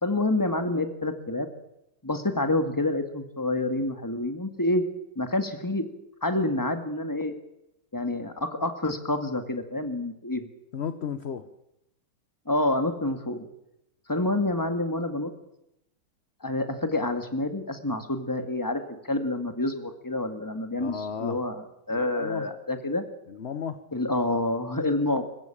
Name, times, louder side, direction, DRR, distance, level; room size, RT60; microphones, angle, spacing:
voice 1, 0.0-1.5 2.0-4.8 5.2-5.8 6.2-7.3 7.9-10.5 12.5-13.5 14.1-15.3 16.4-23.1 23.9-25.2, left 2 dB, 10° left, 7 dB, 2.0 m, -28 dB
voice 2, 10.7-11.5 20.8-21.4 21.9-22.5 23.3-23.8, left 7 dB, 45° left, 11 dB, 1.1 m, -34 dB
25.5 x 15.0 x 8.9 m, 0.84 s
omnidirectional pair, 1.9 m